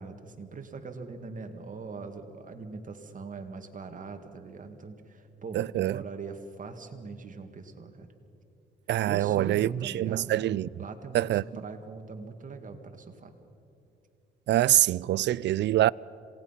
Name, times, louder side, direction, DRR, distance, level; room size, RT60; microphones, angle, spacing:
voice 1, 0.0-8.1 9.1-13.3, right 4 dB, 40° right, 2.1 m, -41 dB
voice 2, 5.5-6.0 8.9-10.7 11.1-11.4 14.5-15.9, right 14 dB, 60° right, 0.4 m, -25 dB
27.0 x 18.5 x 5.9 m
cardioid pair, 90°, 20 cm